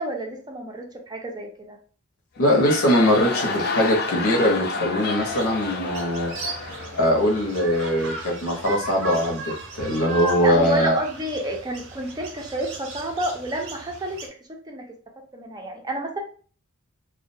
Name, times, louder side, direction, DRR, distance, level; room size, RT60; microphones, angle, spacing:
voice 1, 0.0-1.8 10.4-14.3 14.7-15.0 15.3-16.2, right 1 dB, 20° right, 2 dB, 0.4 m, -30 dB
voice 2, 2.4-6.3 6.9-11.0, equal, 85° left, 0 dB, 0.8 m, -21 dB
sound 1, 2.4-7.9, left 3 dB, 50° left, 0.5 m, -30 dB
sound 2, 5.2-14.3, right 2 dB, 65° right, 0.6 m, -36 dB
2.3 x 2.1 x 2.6 m, 0.42 s
head